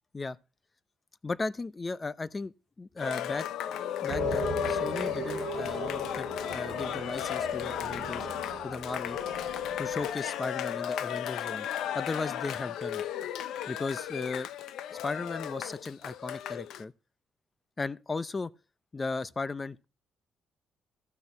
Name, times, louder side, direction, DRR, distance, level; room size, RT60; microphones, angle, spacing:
voice 1, 1.2-3.5 4.0-8.3 8.6-9.2 9.8-11.7 11.9-13.0 13.7-14.5 14.9-16.9 17.8-18.5 18.9-19.8, left 3 dB, 25° left, 0.7 m, -36 dB
Cheering, 3.0-16.8, left 10 dB, 80° left, 0.7 m, -34 dB
sound 1, 4.1-10.2, right 9 dB, 70° right, 1.1 m, -40 dB
14.5 x 6.4 x 5.9 m
cardioid pair, 90°, 0 cm